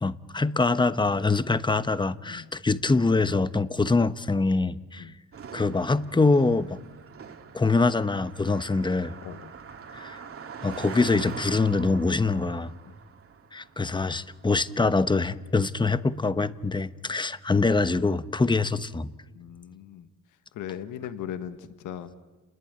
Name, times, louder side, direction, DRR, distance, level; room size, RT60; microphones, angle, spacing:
voice 1, 0.0-5.1 5.5-6.8 7.5-9.1 9.9-10.2 10.6-12.7 13.5-19.1, left 3 dB, 15° left, 13 dB, 1.1 m, -24 dB
Car passing by, 5.3-14.9, right 6 dB, 45° right, 2.5 m, -43 dB
voice 2, 19.3-20.1 20.5-22.2, left 9 dB, 85° left, 10 dB, 1.5 m, -38 dB
30.0 x 20.5 x 9.5 m, 1.3 s
cardioid pair, 90°, 30 cm